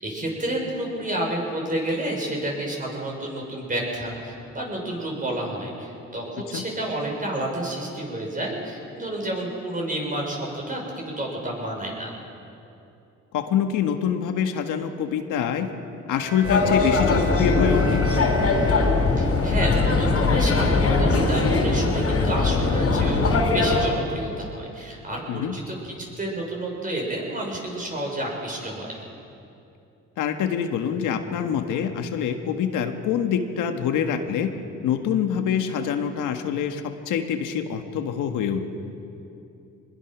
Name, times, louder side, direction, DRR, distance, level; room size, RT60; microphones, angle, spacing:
voice 1, 0.0-12.1 19.2-29.0, right 1 dB, 25° right, -1 dB, 6.2 m, -30 dB
voice 2, 13.3-15.7 16.1-18.0 25.3-25.6 30.2-34.5 34.8-38.7, left 8 dB, 85° left, 6 dB, 1.6 m, -25 dB
Bowed string instrument, 16.1-19.3, equal, 90° right, 4.7 m, -36 dB
sound 1, 16.4-23.9, left 3 dB, 50° left, 3.8 m, -21 dB
23.5 x 20.5 x 6.2 m, 2.7 s
cardioid pair, 90°, 30 cm